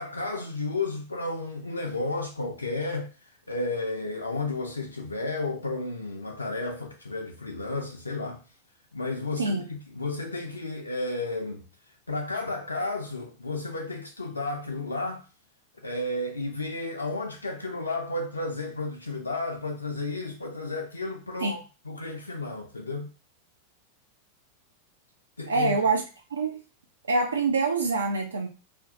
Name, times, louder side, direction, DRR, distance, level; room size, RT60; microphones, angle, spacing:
voice 1, 0.0-8.4 8.9-11.6 12.1-15.3 15.8-21.6 21.9-23.1 25.4-25.8, left 2 dB, 80° left, 0.3 m, -32 dB
voice 2, 25.5-26.0 26.3-26.6 27.1-28.5, right 3 dB, 75° right, 0.3 m, -25 dB
2.4 x 2.2 x 2.6 m
figure-of-eight pair, 90°, 0 cm